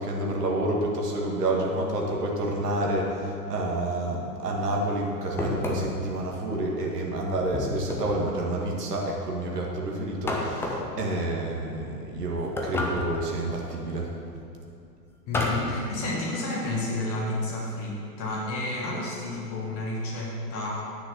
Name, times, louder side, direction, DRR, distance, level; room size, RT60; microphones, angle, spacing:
voice 1, 0.0-14.1, right 1 dB, 70° right, -1 dB, 2.1 m, -29 dB
sound 1, 5.4-6.1 7.5-8.2 10.3-11.0 12.6-13.3 15.3-15.8, left 2 dB, 5° left, 0.5 m, -29 dB
voice 2, 15.3-20.8, left 2 dB, 30° left, -3 dB, 1.7 m, -31 dB
10.5 x 6.3 x 6.3 m, 2.6 s
figure-of-eight pair, 100°, 49 cm